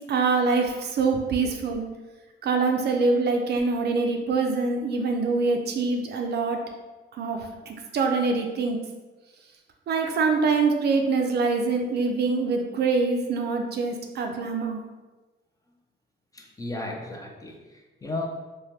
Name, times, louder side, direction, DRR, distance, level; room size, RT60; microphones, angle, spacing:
voice 1, 0.1-1.9 2.4-6.6 7.1-8.8 9.9-14.8, right 4 dB, 55° right, 3 dB, 0.4 m, -24 dB
voice 2, 16.3-18.3, left 2 dB, 15° left, 0 dB, 0.4 m, -35 dB
2.7 x 2.2 x 3.1 m, 1.2 s
cardioid pair, 90°, 20 cm